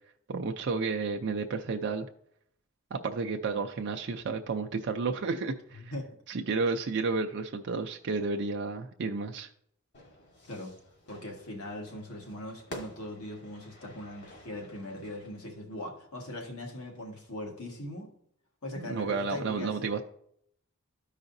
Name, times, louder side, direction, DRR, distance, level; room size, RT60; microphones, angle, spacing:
voice 1, 0.3-2.1 2.9-5.9 6.3-9.5 18.7-20.0, right 4 dB, 55° right, 3 dB, 0.5 m, -31 dB
voice 2, 5.7-6.1 10.4-10.8 11.1-18.1 18.6-19.9, left 1 dB, 80° left, 0 dB, 1.6 m, -40 dB
Fire / Fireworks, 9.9-15.5, left 1 dB, 55° left, 1.8 m, -49 dB
14.0 x 4.9 x 2.7 m, 0.68 s
head